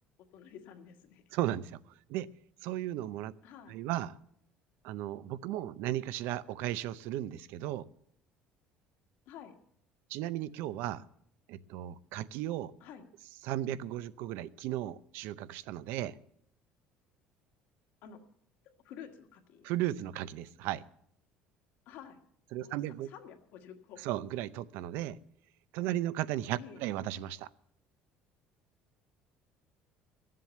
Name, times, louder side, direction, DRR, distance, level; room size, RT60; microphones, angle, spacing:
voice 1, 0.3-1.2 3.4-3.7 9.3-9.5 12.8-13.0 18.0-18.2 18.8-19.6 21.8-22.2 22.6-22.8 23.0-24.0 26.6-26.8, left 8 dB, 60° left, 5 dB, 1.6 m, -50 dB
voice 2, 1.3-1.8 2.1-2.3 2.6-3.3 3.7-4.2 4.8-7.9 10.1-11.0 11.5-12.7 13.4-16.2 19.6-20.8 22.5-23.1 24.0-25.2 25.7-27.5, right 13 dB, 70° right, 17 dB, 0.6 m, -35 dB
14.5 x 7.6 x 8.4 m, 0.69 s
cardioid pair, 175°, 4 cm